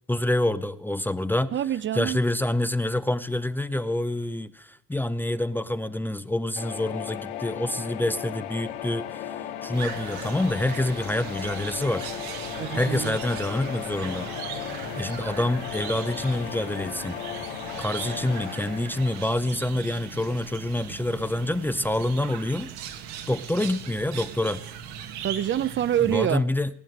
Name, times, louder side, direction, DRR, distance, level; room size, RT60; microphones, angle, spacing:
voice 1, 0.1-1.5 1.9-12.1 12.7-14.3 15.0-17.2 17.8-22.7 23.3-24.6 26.1-26.7, left 1 dB, 5° left, 0.7 m, -27 dB
voice 2, 1.5-2.2 12.6-13.2 25.2-26.4, right 10 dB, 40° right, 0.7 m, -26 dB
sound 1, 6.6-20.4, left 10 dB, 80° left, 2.0 m, -36 dB
sound 2, 9.7-26.2, right 8 dB, 80° right, 1.9 m, -39 dB
19.0 x 9.2 x 8.0 m
supercardioid pair, 110°, 30 cm